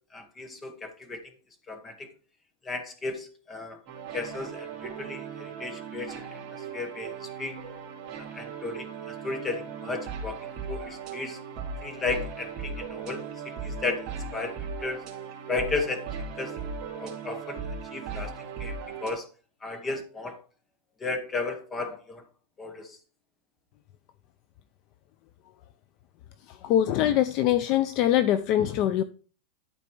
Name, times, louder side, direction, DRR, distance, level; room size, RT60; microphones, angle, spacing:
voice 1, 0.1-1.3 1.7-2.1 2.6-3.8 4.1-6.4 6.7-7.6 8.2-11.4 11.8-15.0 15.5-16.1 16.4-16.5 17.0-17.6 17.9-19.3 19.6-20.4 21.0-22.2 22.6-23.0, left 3 dB, 15° left, 1.0 m, -34 dB
sound 1, 3.9-19.1, right 5 dB, 25° right, 2.6 m, -38 dB
voice 2, 26.6-29.0, left 11 dB, 35° left, 0.4 m, -23 dB
12.0 x 4.0 x 4.5 m
supercardioid pair, 175°, 0 cm